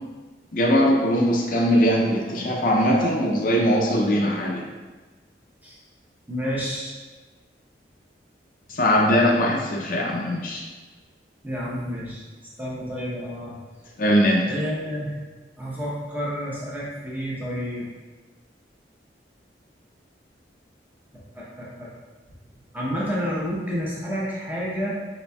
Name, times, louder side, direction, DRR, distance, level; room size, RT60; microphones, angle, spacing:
voice 1, 0.5-4.6 8.7-10.6 14.0-14.5, equal, 50° left, -1 dB, 0.5 m, -20 dB
voice 2, 6.3-7.0 11.4-12.2 12.6-13.5 14.4-15.1 15.6-17.9 21.3-21.9 22.7-25.0, equal, 10° right, -6 dB, 0.8 m, -29 dB
4.2 x 4.1 x 2.3 m, 1.3 s
head